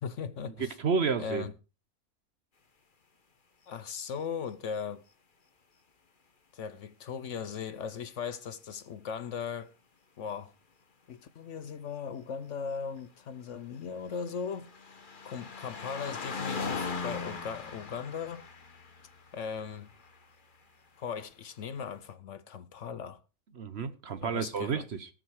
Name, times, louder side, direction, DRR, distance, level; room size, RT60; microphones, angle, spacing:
voice 1, 0.0-0.8 1.2-1.5 3.7-5.0 6.5-9.7 10.2-10.5 11.1-15.0 15.2-18.5 19.3-19.9 21.0-23.2 24.2-24.8, left 6 dB, 60° left, 1.0 m, -38 dB
voice 2, 0.6-1.5 23.6-25.1, right 5 dB, 50° right, 1.0 m, -31 dB
sound 1, 13.7-20.4 21.3-21.4, left 4 dB, 35° left, 1.3 m, -40 dB
19.0 x 6.3 x 4.7 m
omnidirectional pair, 1.6 m